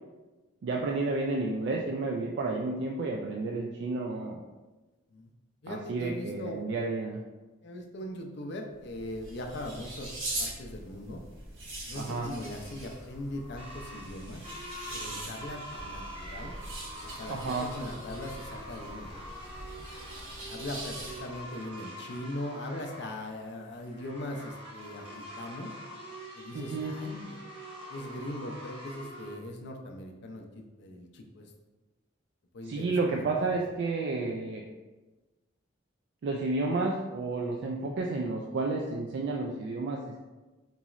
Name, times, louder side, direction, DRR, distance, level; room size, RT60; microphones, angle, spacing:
voice 1, 0.6-4.4 5.7-7.2 12.0-12.3 17.3-17.7 26.5-26.9 32.7-34.6 36.2-40.2, right 3 dB, 60° right, 0 dB, 0.3 m, -31 dB
voice 2, 5.6-6.6 7.6-11.2 11.9-14.4 14.9-16.5 17.0-19.1 20.4-25.7 26.3-27.4 27.9-31.5 32.5-33.6, left 1 dB, 60° left, 3 dB, 0.4 m, -40 dB
sound 1, 8.7-21.5, right 1 dB, 85° right, 1.0 m, -42 dB
sound 2, 12.2-29.4, equal, 30° right, 0.7 m, -45 dB
4.0 x 3.0 x 2.4 m, 1.2 s
head